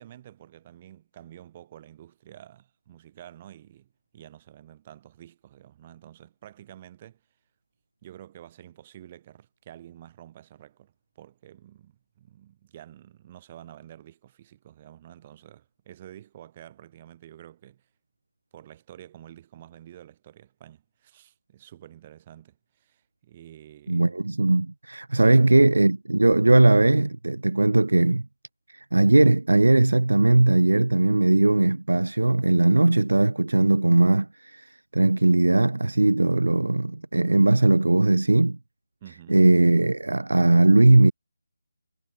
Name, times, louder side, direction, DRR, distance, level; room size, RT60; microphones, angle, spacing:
voice 1, 0.0-7.2 8.0-17.9 18.5-24.2 25.1-25.5 39.0-39.5, right 12 dB, 25° right, 2.1 m, -49 dB
voice 2, 23.9-28.3 28.7-38.6 39.3-41.1, right 2 dB, 80° right, 0.6 m, -19 dB
figure-of-eight pair, 155°, 0 cm